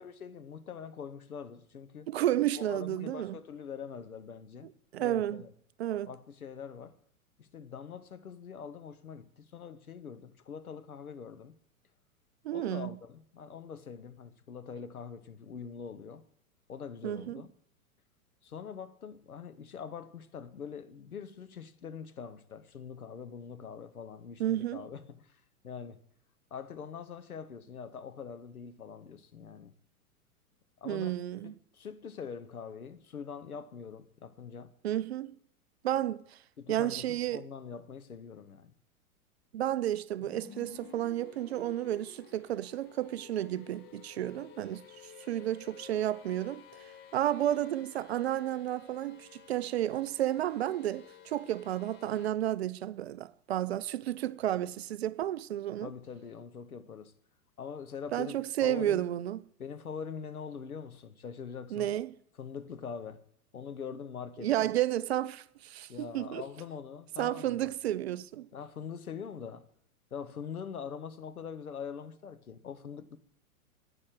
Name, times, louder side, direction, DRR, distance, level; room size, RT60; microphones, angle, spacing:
voice 1, 0.0-2.1 2.5-4.7 5.0-5.5 6.1-7.0 7.4-11.5 12.5-16.2 16.7-17.5 18.4-26.0 26.5-29.7 30.8-31.2 31.4-34.7 36.6-38.7 55.8-57.1 57.6-58.4 58.6-59.0 59.6-61.9 62.4-63.2 63.5-64.7 65.9-67.7 68.5-69.7 70.1-73.2, left 6 dB, 75° left, 1.2 m, -43 dB
voice 2, 2.1-3.3 4.9-5.4 5.8-6.1 12.4-12.9 17.0-17.4 24.4-24.9 30.9-31.5 34.8-35.4 35.8-36.4 36.7-37.5 39.5-55.9 58.1-59.4 61.7-62.2 64.4-66.4 67.2-68.5, right 12 dB, 45° right, 0.5 m, -32 dB
sound 1, 40.2-52.3, left 8 dB, 25° left, 0.8 m, -53 dB
10.5 x 8.8 x 7.5 m
figure-of-eight pair, 105°, 44 cm